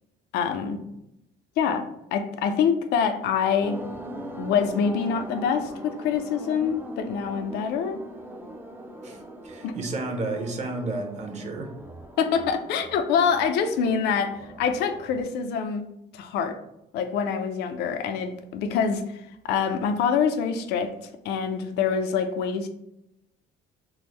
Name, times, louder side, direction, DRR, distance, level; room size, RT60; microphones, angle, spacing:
voice 1, 0.3-0.8 1.6-3.8 4.4-8.0 9.6-9.7 12.2-15.8 16.1-16.6 16.9-22.7, left 6 dB, 80° left, 8 dB, 0.5 m, -25 dB
sound 1, 3.6-15.2, right 1 dB, 10° right, 0.4 m, -41 dB
voice 2, 9.0-11.7, right 2 dB, 45° right, 3 dB, 0.7 m, -32 dB
3.6 x 2.1 x 3.0 m, 0.83 s
cardioid pair, 110°, 17 cm